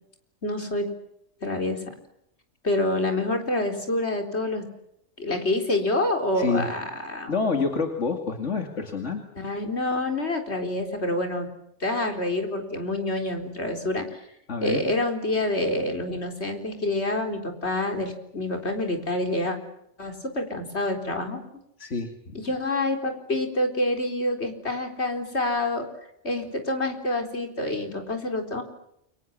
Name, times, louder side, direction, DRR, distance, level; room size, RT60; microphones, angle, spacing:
voice 1, 0.4-0.9 1.4-1.8 2.6-4.7 5.2-7.4 9.4-11.5 11.8-14.2 14.6-19.6 20.0-21.4 22.3-25.9 26.2-28.6, left 1 dB, 65° left, 5 dB, 4.4 m, -27 dB
voice 2, 6.4-6.7 7.3-9.3 14.5-14.9 21.8-22.3, left 4 dB, 85° left, 4 dB, 2.7 m, -27 dB
29.5 x 23.5 x 7.4 m, 0.77 s
omnidirectional pair, 1.2 m